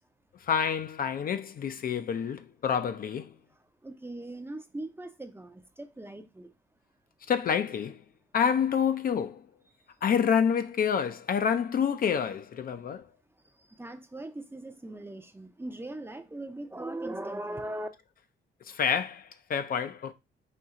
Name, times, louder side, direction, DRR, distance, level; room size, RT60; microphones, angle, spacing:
voice 1, 0.4-3.3 7.3-8.0 8.3-9.4 10.0-13.1 18.7-20.1, left 7 dB, 45° left, 0.4 m, -28 dB
voice 2, 3.8-6.5 12.7-12.9 13.4-17.9, right 1 dB, 10° right, 0.5 m, -40 dB
4.4 x 2.7 x 3.5 m
cardioid pair, 90°, 20 cm